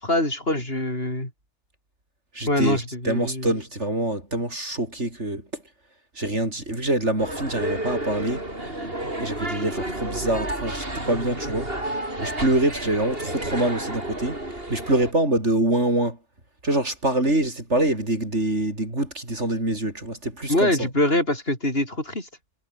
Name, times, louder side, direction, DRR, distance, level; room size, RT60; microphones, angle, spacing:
voice 1, 0.0-1.3 2.5-3.5 20.5-22.3, left 1 dB, 55° left, 7.2 m, -24 dB
voice 2, 2.3-5.6 6.2-8.5 9.2-11.7 12.2-16.2 16.6-20.9, right 1 dB, 75° right, 7.5 m, -25 dB
sound 1, 7.2-15.1, right 1 dB, 55° right, 7.5 m, -31 dB
omnidirectional pair, 1.2 m